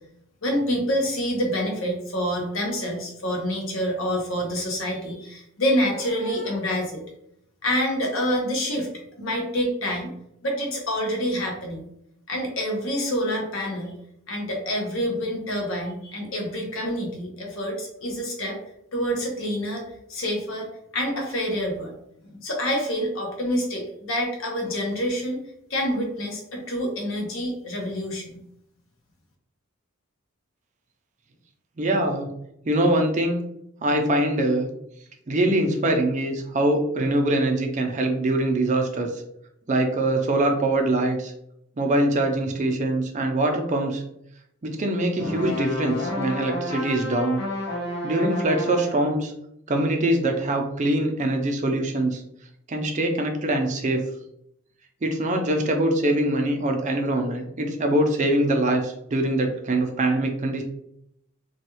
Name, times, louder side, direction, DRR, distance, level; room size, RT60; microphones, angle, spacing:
voice 1, 0.4-7.0 7.6-8.9 9.2-10.1 10.4-11.8 12.3-13.9 14.3-18.6 18.9-21.9 22.3-25.4 25.7-28.4, equal, 70° left, 1 dB, 0.9 m, -27 dB
voice 2, 31.8-32.3 32.6-33.4 33.8-34.7 35.3-39.2 39.7-41.3 41.8-44.0 44.6-47.4 48.0-49.3 49.7-52.2 52.7-54.0 55.0-60.6, right 1 dB, 35° right, 4 dB, 0.5 m, -23 dB
sound 1, 45.1-49.1, left 1 dB, 55° left, 0.9 m, -31 dB
3.1 x 2.3 x 2.9 m, 0.76 s
head